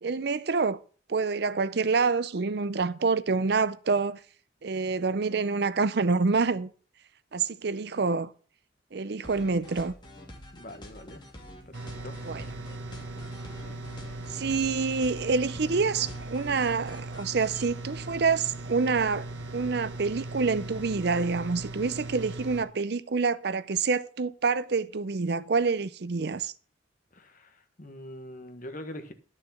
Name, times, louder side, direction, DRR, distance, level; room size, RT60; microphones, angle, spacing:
voice 1, 0.0-0.8 1.1-4.2 4.6-6.7 7.3-8.3 8.9-9.9 12.2-12.4 14.3-19.3 19.5-26.5, right 4 dB, 60° right, 0.6 m, -27 dB
sound 1, 9.2-17.6, left 1 dB, 25° left, 2.8 m, -47 dB
voice 2, 10.5-11.2 11.7-11.8 12.0-12.2 27.1-27.5 27.8-29.1, left 1 dB, 45° left, 1.5 m, -42 dB
sound 2, 11.7-22.6, right 2 dB, 90° right, 1.2 m, -39 dB
11.0 x 6.5 x 5.8 m
head